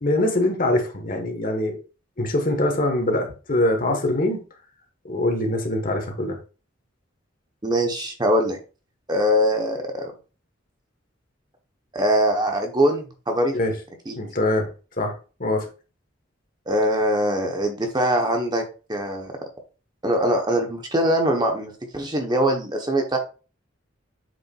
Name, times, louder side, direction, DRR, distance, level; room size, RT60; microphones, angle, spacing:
voice 1, 0.0-1.8 2.2-4.4 5.1-6.4 13.5-13.8 14.1-14.7 15.0-15.7, left 1 dB, 45° left, 1.7 m, -23 dB
voice 2, 7.6-8.6 9.1-10.1 11.9-13.5 14.1-14.2 16.7-18.6 18.9-19.4 20.0-23.2, equal, 20° right, 1.2 m, -22 dB
7.7 x 6.1 x 2.5 m
head